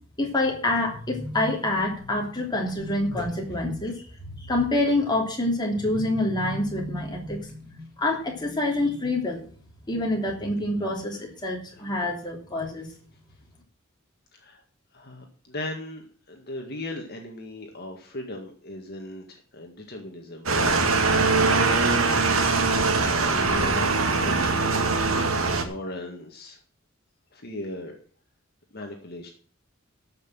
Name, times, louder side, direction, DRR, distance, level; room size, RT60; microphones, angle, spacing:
voice 1, 0.2-4.0 4.3-9.5 9.9-12.9, left 2 dB, 20° left, 0 dB, 3.2 m, -27 dB
voice 2, 14.3-14.6 14.9-21.2 21.4-22.1 23.4-26.6 27.3-28.0 28.7-29.3, left 1 dB, 50° left, 2 dB, 1.9 m, -38 dB
sound 1, 20.5-25.6, right 3 dB, 85° right, 2.0 m, -22 dB
13.0 x 6.1 x 7.5 m, 0.43 s
head